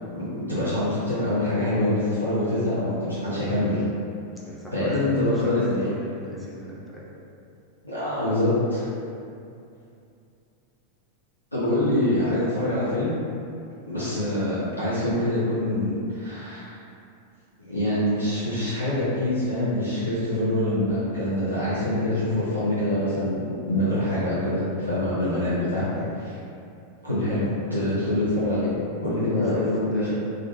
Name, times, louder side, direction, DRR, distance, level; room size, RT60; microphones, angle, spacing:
voice 1, 0.2-3.8 4.7-5.9 7.8-8.9 11.5-13.1 13.9-16.8 17.6-25.9 26.2-26.4 27.0-28.7 29.0-30.1, left 1 dB, 85° left, -11 dB, 0.5 m, -25 dB
voice 2, 4.4-5.6 5.8-7.0 25.9-26.1 29.5-29.6 29.9-30.2, equal, ahead, -7 dB, 0.5 m, -37 dB
2.4 x 2.1 x 2.6 m, 2.5 s
figure-of-eight pair, 90°, 0 cm